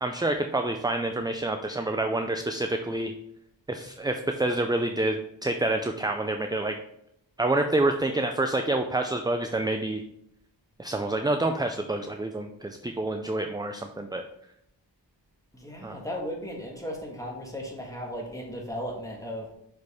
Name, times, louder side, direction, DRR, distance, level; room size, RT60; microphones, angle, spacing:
voice 1, 0.0-3.1 3.7-6.7 7.4-10.0 10.8-14.2 15.8-16.0, right 2 dB, 10° right, 6 dB, 0.4 m, -27 dB
voice 2, 15.5-19.5, equal, 5° left, -1 dB, 1.6 m, -36 dB
6.1 x 5.1 x 3.5 m, 0.76 s
wide cardioid pair, 55°, 44 cm